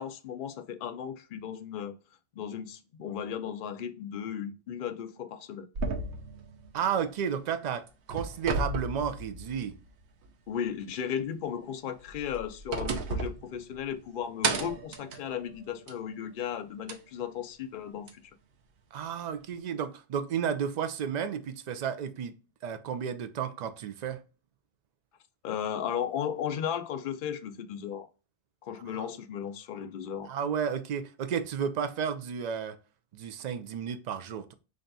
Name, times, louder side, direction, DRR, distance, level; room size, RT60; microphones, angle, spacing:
voice 1, 0.0-2.0 2.3-5.7 10.5-18.1 25.4-28.1 28.6-30.3, left 8 dB, 60° left, 0.6 m, -35 dB
sound 1, 5.8-7.5 7.9-9.9 10.2-10.3 11.9-14.0 14.4-16.1 16.9-17.0 18.1-18.2, right 3 dB, 75° right, 0.9 m, -34 dB
voice 2, 6.7-9.7 18.9-22.3 22.6-24.2 28.9-29.1 30.2-32.8 33.1-34.5, right 7 dB, 55° right, 0.5 m, -32 dB
3.4 x 2.6 x 3.9 m
omnidirectional pair, 1.2 m